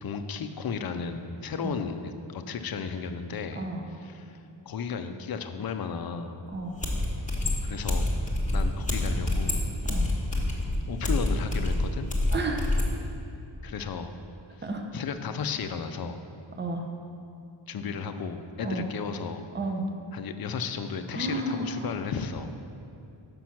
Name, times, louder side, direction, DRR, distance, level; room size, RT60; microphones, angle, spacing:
voice 1, 0.0-3.7 4.0-4.4 4.7-6.4 7.6-8.1 8.5-9.6 10.9-12.1 13.6-14.1 14.9-16.2 17.7-19.4 20.1-22.5, left 6 dB, 50° left, 8 dB, 0.5 m, -34 dB
voice 2, 3.6-3.9 6.5-6.8 9.9-10.1 12.3-12.7 14.6-14.9 16.6-16.8 18.6-18.9 19.5-19.8 21.1-21.9, right 2 dB, 20° right, 3 dB, 0.6 m, -32 dB
sound 1, 6.5-6.6 6.8-12.9, left 1 dB, 15° left, 1.1 m, -27 dB
6.0 x 5.2 x 5.8 m, 2.7 s
wide cardioid pair, 95°, 49 cm